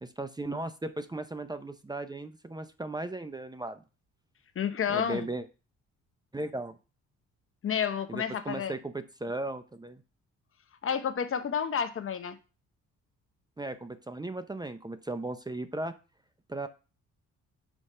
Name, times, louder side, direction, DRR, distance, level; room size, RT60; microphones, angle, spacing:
voice 1, 0.0-3.8 4.9-5.5 6.3-6.8 8.1-10.0 13.6-15.9 16.5-16.7, right 2 dB, 15° right, 0.6 m, -36 dB
voice 2, 4.6-5.3 7.6-8.7 10.8-12.4, left 8 dB, 45° left, 0.8 m, -30 dB
5.6 x 4.6 x 5.5 m
cardioid pair, 90°, 30 cm